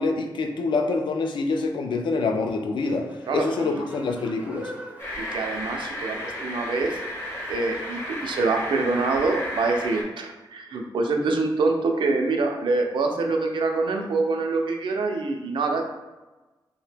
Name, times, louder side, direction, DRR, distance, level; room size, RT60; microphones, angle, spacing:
voice 1, 0.0-4.7, left 3 dB, 75° left, 4 dB, 0.3 m, -26 dB
sound 1, 2.8-9.1, equal, 15° right, 0.4 m, -44 dB
voice 2, 3.3-3.9 5.2-7.0 7.5-15.8, right 3 dB, 90° right, 3 dB, 0.4 m, -25 dB
sound 2, 5.0-10.0, left 1 dB, 30° left, 0.6 m, -33 dB
2.8 x 2.1 x 3.3 m, 1.1 s
wide cardioid pair, 155°, 8 cm